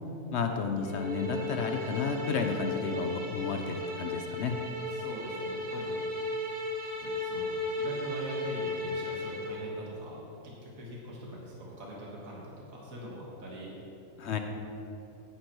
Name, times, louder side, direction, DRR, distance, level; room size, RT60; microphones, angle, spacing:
voice 1, 0.3-4.6 14.2-14.4, left 5 dB, 60° left, 5 dB, 0.8 m, -32 dB
sound 1, 0.8-9.7, left 2 dB, 45° right, 1.1 m, -35 dB
voice 2, 4.9-6.0 7.0-10.3 10.6-13.7, equal, 65° right, -4 dB, 2.0 m, -42 dB
10.0 x 9.6 x 3.0 m, 2.9 s
omnidirectional pair, 1.5 m